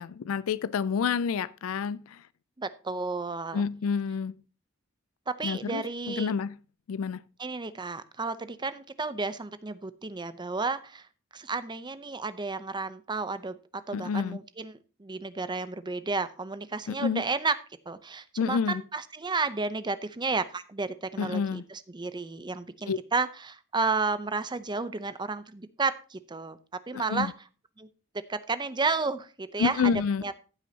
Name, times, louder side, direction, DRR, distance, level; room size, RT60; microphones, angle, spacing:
voice 1, 0.0-2.2 3.5-4.3 5.4-6.6 6.9-7.2 13.9-14.4 16.9-17.2 18.4-18.8 21.2-21.6 22.9-23.0 26.9-27.3 29.6-30.3, left 6 dB, 75° left, 0.4 m, -29 dB
voice 2, 2.6-3.6 5.3-6.3 7.4-11.1 11.3-13.6 13.9-17.6 17.9-26.6 26.9-27.3 27.8-27.9 28.3-29.9 30.2-30.3, right 4 dB, 20° right, 0.6 m, -32 dB
14.5 x 8.3 x 2.8 m
head